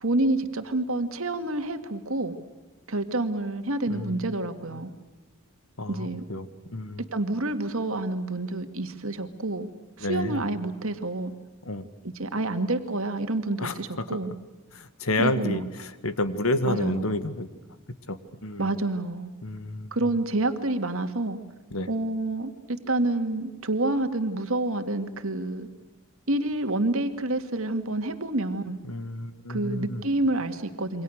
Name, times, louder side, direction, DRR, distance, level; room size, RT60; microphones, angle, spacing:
voice 1, 0.0-2.4 2.9-4.9 5.9-6.2 7.0-9.7 10.0-11.3 12.2-14.3 15.2-15.6 16.6-17.0 18.6-19.3 19.9-21.4 21.9-25.7 26.3-28.8 29.5-31.0, right 2 dB, 70° right, 7 dB, 2.2 m, -28 dB
voice 2, 3.9-4.3 4.7-4.8 5.8-7.0 10.0-10.5 11.6-11.8 13.6-14.2 14.7-17.5 18.1-18.7 19.4-20.1 21.7-21.9 28.9-30.1, left 1 dB, 75° left, 11 dB, 1.9 m, -30 dB
28.0 x 24.5 x 6.6 m, 1.3 s
head